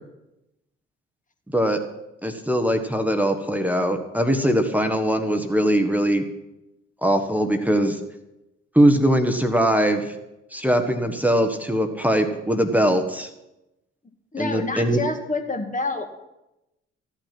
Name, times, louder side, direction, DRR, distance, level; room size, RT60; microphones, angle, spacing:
voice 1, 2.2-6.2 7.0-8.0 8.7-10.1 10.5-13.3 14.4-15.0, equal, 5° right, 6 dB, 1.5 m, -21 dB
voice 2, 14.3-16.2, left 3 dB, 25° left, 5 dB, 2.0 m, -28 dB
14.5 x 9.0 x 6.0 m, 0.94 s
figure-of-eight pair, 40°, 33 cm